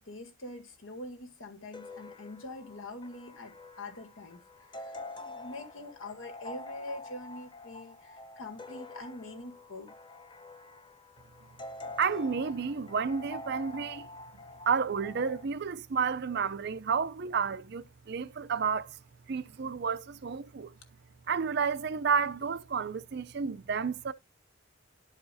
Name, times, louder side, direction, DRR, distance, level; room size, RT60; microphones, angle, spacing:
voice 1, 0.0-9.9, left 2 dB, 75° left, 1.9 m, -44 dB
sound 1, 1.7-15.5, left 2 dB, 25° left, 0.7 m, -46 dB
voice 2, 12.0-14.1 14.7-19.0 19.3-20.8 21.3-24.1, right 5 dB, 50° right, 0.5 m, -31 dB
11.5 x 4.8 x 2.7 m
head